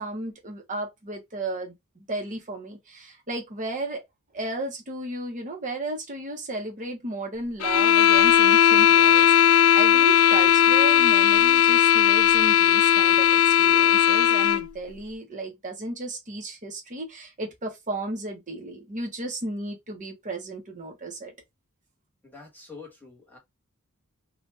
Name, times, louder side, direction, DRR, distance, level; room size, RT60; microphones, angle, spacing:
voice 1, 0.0-4.0 4.3-21.3, right 2 dB, 35° right, 0.9 m, -34 dB
sound 1, 7.6-14.7, left 10 dB, 80° left, 0.3 m, -18 dB
voice 2, 22.2-23.4, left 4 dB, 10° left, 1.2 m, -45 dB
2.7 x 2.4 x 3.3 m
head